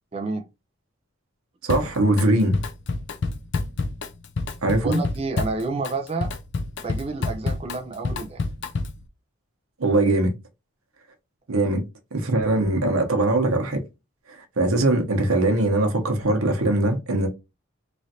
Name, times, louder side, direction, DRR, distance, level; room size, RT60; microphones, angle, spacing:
voice 1, 0.1-0.5 4.8-6.3 6.8-8.4, right 3 dB, 30° right, 0.4 m, -29 dB
voice 2, 1.6-2.6 4.6-5.0 9.8-10.3 11.5-11.8 12.1-13.8 14.3-17.3, right 2 dB, 90° right, 0.9 m, -21 dB
Drum kit, 1.7-2.3 2.5-9.1, left 3 dB, 55° left, 0.4 m, -29 dB
3.1 x 2.5 x 2.7 m
head